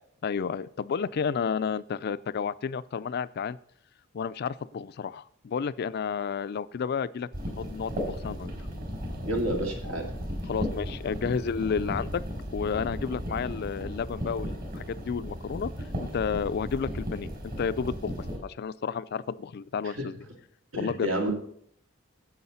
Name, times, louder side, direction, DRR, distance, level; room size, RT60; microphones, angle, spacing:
voice 1, 0.2-3.6 4.1-7.3 7.6-8.5 10.5-12.2 12.5-15.7 16.0-17.3 17.6-20.1 20.8-21.1, left 6 dB, 55° left, 16 dB, 0.4 m, -31 dB
sound 1, 7.3-18.4, equal, 50° right, 3.7 m, -35 dB
voice 2, 9.3-10.1 19.9-20.0 20.7-21.3, right 1 dB, 80° right, 2 dB, 2.4 m, -29 dB
9.5 x 8.1 x 5.7 m, 0.65 s
head